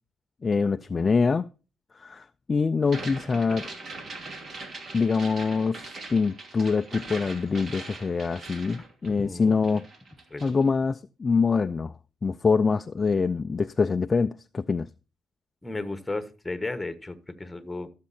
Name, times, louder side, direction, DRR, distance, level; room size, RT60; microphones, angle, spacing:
voice 1, 0.4-1.5 1.9-3.7 4.9-9.9 10.4-11.9 12.2-14.9, left 4 dB, 30° left, 0.4 m, -25 dB
sound 1, 2.8-9.4 9.6-10.6, right 3 dB, 50° right, 2.6 m, -41 dB
voice 2, 9.1-9.6 10.3-10.6 15.6-17.9, left 2 dB, 10° left, 1.4 m, -34 dB
12.5 x 7.4 x 4.2 m
cardioid pair, 90°, 0 cm